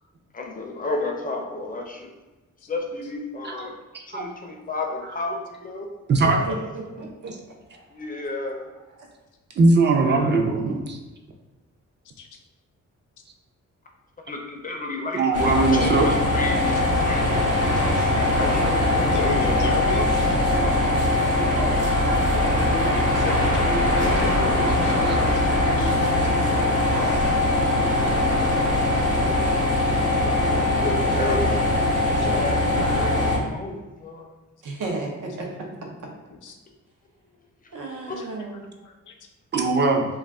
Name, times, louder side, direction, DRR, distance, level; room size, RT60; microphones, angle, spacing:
voice 1, 0.3-2.1 2.7-3.8 4.1-5.9 6.2-6.6 7.9-8.7 10.0-10.4 14.3-18.8 30.2-31.7 32.2-34.3 37.6-37.7 38.1-38.2, left 2 dB, 30° left, 2 dB, 0.4 m, -32 dB
voice 2, 6.1-6.4 7.2-7.4 9.6-11.0 15.1-16.1 22.0-22.2 35.4-35.5 39.5-40.1, right 3 dB, 35° right, 2 dB, 0.4 m, -20 dB
voice 3, 7.0-7.3 7.7-7.8 19.8-19.9 20.2-20.3 34.6-35.5 37.7-38.6, right 2 dB, 85° right, 0 dB, 0.7 m, -34 dB
sound 1, 15.3-33.4, left 1 dB, 55° right, 1.1 m, -21 dB
voice 4, 19.1-20.1 21.0-21.1 22.5-26.3 36.3-36.6 38.2-38.3 38.8-39.2, left 5 dB, 85° left, 3 dB, 0.5 m, -34 dB
2.4 x 2.3 x 3.4 m, 1.1 s
wide cardioid pair, 130°, 30 cm